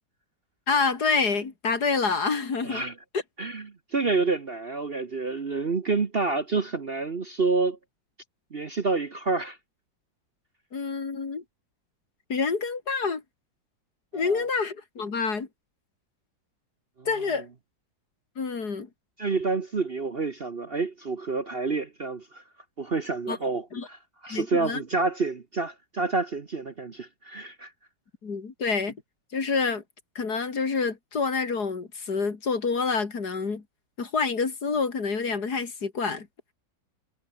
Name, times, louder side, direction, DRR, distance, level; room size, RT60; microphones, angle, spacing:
voice 1, 0.7-2.8 10.7-11.4 12.3-13.2 14.1-15.5 17.1-17.5 18.4-18.9 23.3-23.4 23.7-23.9 24.3-24.8 28.2-29.0 29.3-29.8 30.1-33.6 34.0-36.3, left 4 dB, 60° left, 3.1 m, -27 dB
voice 2, 2.6-2.9 3.4-3.7 3.9-7.8 8.5-9.6 14.1-14.4 17.0-17.1 17.3-17.4 19.2-22.4 22.8-27.7, right 4 dB, 35° right, 1.2 m, -28 dB
omnidirectional pair, 2.0 m